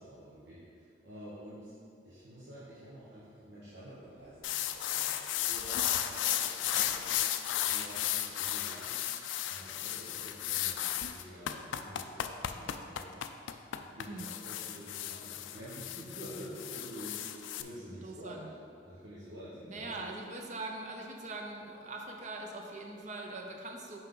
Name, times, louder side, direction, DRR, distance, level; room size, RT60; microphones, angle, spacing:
voice 1, 0.0-1.7 2.0-9.0 9.4-13.2 13.8-18.5 18.8-20.1, equal, 90° right, -10 dB, 1.3 m, -49 dB
sound 1, 4.4-17.6, left 11 dB, 85° left, 0.3 m, -34 dB
voice 2, 17.9-18.5 19.7-24.0, right 2 dB, 40° right, 2 dB, 0.6 m, -42 dB
5.9 x 5.5 x 3.8 m, 2.5 s
head